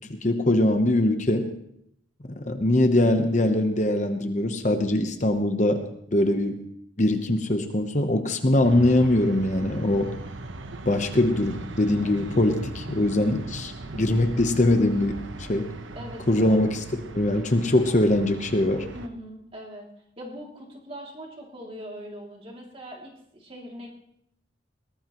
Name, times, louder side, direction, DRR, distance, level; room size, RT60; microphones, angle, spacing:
voice 1, 0.1-1.5 2.2-5.8 6.1-6.6 7.0-10.1 10.8-15.7 16.3-16.8 17.1-18.9, left 1 dB, 40° left, 6 dB, 1.0 m, -22 dB
sound 1, 8.6-19.1, right 2 dB, 85° right, 1.0 m, -38 dB
voice 2, 15.9-16.6 18.9-19.9 20.2-23.9, equal, 30° right, -1 dB, 2.8 m, -41 dB
21.5 x 18.0 x 3.1 m, 0.74 s
head